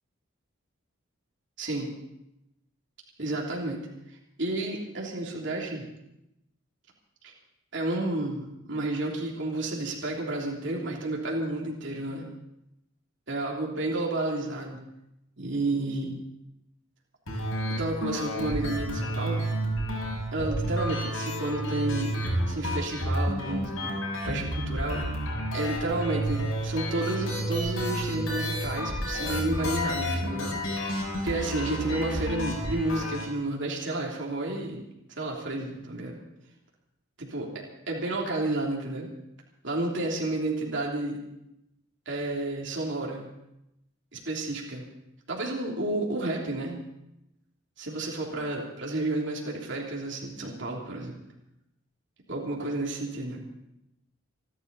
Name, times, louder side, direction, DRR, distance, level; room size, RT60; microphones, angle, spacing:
voice 1, 1.6-1.9 3.2-5.8 7.2-7.3 7.7-12.3 13.3-14.8 15.4-16.2 17.8-19.5 20.3-22.1 22.5-23.9 24.3-25.0 25.5-30.6 31.2-34.8 35.1-36.2 37.2-37.5 37.9-39.1 39.6-41.2 42.0-43.3 44.1-44.8 45.3-46.8 47.8-51.2 52.3-53.4, right 2 dB, 60° right, -2 dB, 3.1 m, -31 dB
sound 1, 17.3-33.3, equal, 75° left, 6.9 m, -30 dB
27.0 x 11.5 x 4.1 m, 0.86 s
head